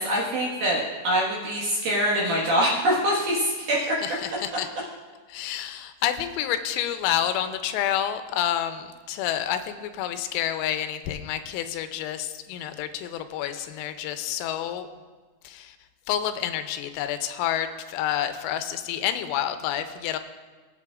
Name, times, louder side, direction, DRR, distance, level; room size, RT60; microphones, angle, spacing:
voice 1, 0.0-4.0, equal, 60° right, -5 dB, 2.6 m, -24 dB
voice 2, 3.8-4.7 5.3-14.9 15.4-15.8 16.1-20.2, left 10 dB, 90° left, 9 dB, 3.3 m, -29 dB
20.5 x 8.4 x 2.4 m, 1.4 s
omnidirectional pair, 5.9 m